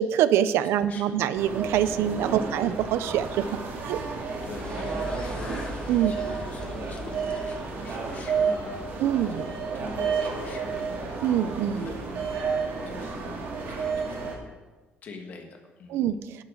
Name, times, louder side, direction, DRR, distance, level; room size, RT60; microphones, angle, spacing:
voice 1, 0.0-3.5 3.8-4.1 5.9-6.2 9.0-9.4 11.2-11.9 15.9-16.4, right 10 dB, 85° right, 14 dB, 0.5 m, -25 dB
voice 2, 0.8-1.1 2.3-2.6 4.4-8.8 9.3-12.1 12.5-14.2 15.0-16.0, left 4 dB, 40° left, 3 dB, 1.5 m, -44 dB
sound 1, 1.4-14.3, right 5 dB, 55° right, 2.2 m, -31 dB
sound 2, 4.6-8.5, left 1 dB, 25° left, 0.9 m, -40 dB
11.5 x 9.7 x 3.9 m, 1.2 s
cardioid pair, 175°, 4 cm